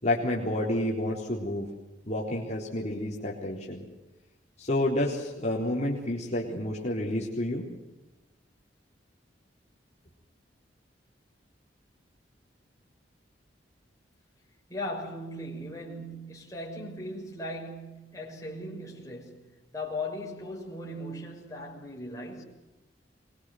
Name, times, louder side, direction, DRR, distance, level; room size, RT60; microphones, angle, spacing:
voice 1, 0.0-1.7 2.1-3.8 4.6-7.6, left 1 dB, 40° left, 4.1 m, -29 dB
voice 2, 14.7-22.4, left 1 dB, 20° left, 6.4 m, -38 dB
25.0 x 22.0 x 8.0 m
head